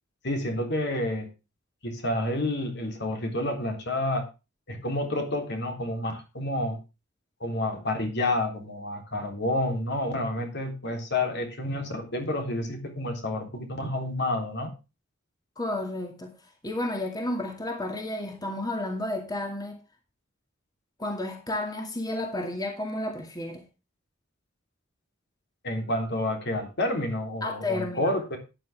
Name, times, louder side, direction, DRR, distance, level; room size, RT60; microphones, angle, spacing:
voice 1, 0.2-1.3 1.8-4.3 4.7-6.8 7.4-14.7 25.6-28.4, left 1 dB, 60° left, 3.6 m, -29 dB
voice 2, 15.6-16.3 16.6-19.8 21.0-23.6 27.4-28.2, left 1 dB, 20° left, 2.3 m, -32 dB
14.0 x 9.8 x 3.5 m
head